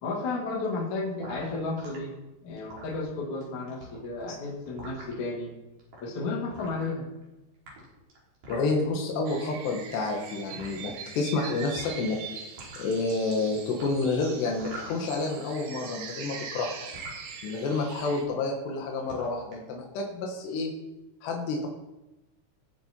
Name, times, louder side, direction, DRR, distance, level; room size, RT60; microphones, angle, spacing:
voice 1, 0.0-2.2 2.4-5.5 6.0-7.1, left 3 dB, 50° left, -3 dB, 3.4 m, -33 dB
sound 1, 1.2-2.0 2.5-3.4 3.7-5.1 5.8-6.0 6.5-7.2 7.5-8.8 9.7-10.3 10.6-10.7 11.7-12.2 12.5-13.0 13.8-15.4 15.7-17.2 17.8-18.0 18.3-18.6 18.9-19.6, right 1 dB, 50° right, 5.6 m, -45 dB
voice 2, 8.5-12.2 12.8-16.9 17.4-20.7 21.2-21.7, left 3 dB, 85° left, 0 dB, 3.8 m, -29 dB
sound 2, 9.3-18.2, right 6 dB, 75° right, 3.6 m, -42 dB
20.0 x 7.9 x 4.5 m, 1.0 s
omnidirectional pair, 4.7 m